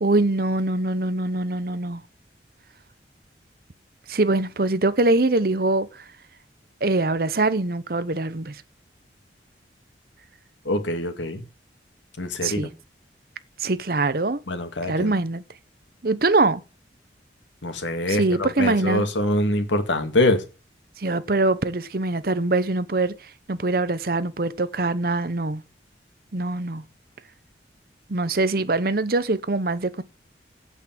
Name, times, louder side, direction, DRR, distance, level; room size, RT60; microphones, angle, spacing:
voice 1, 0.0-2.0 4.1-5.9 6.8-8.5 12.4-12.7 13.6-14.4 14.9-15.4 16.0-16.6 18.1-19.1 21.0-23.1 23.5-25.6 26.3-26.8 28.1-30.0, right 2 dB, 55° right, 0.8 m, -23 dB
voice 2, 10.7-11.4 12.2-12.7 14.5-15.1 17.6-20.4, left 1 dB, 90° left, 2.1 m, -24 dB
8.5 x 8.2 x 7.4 m
head